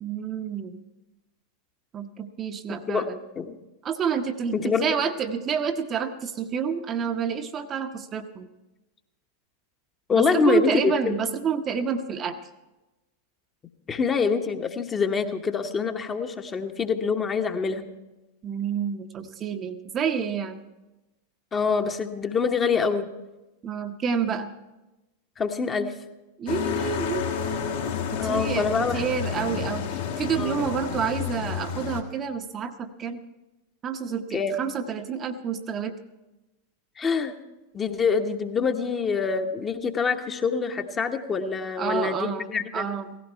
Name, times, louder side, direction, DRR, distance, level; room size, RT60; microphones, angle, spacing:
voice 1, 0.0-0.8 1.9-3.2 3.8-8.5 10.1-12.4 18.4-20.6 23.6-24.5 26.4-29.9 30.2-33.2 33.8-36.0 41.8-43.2, right 7 dB, 25° right, 6 dB, 0.8 m, -29 dB
voice 2, 2.7-3.1 3.4-3.6 4.5-4.9 10.1-11.1 13.9-17.9 21.5-23.1 25.4-25.9 28.2-29.0 30.4-30.7 34.3-34.6 37.0-37.3 37.7-42.8, left 5 dB, 20° left, 6 dB, 1.1 m, -25 dB
sound 1, 26.5-32.0, left 8 dB, 55° left, 1.7 m, -30 dB
16.5 x 15.5 x 4.5 m, 1.0 s
figure-of-eight pair, 90°, 0 cm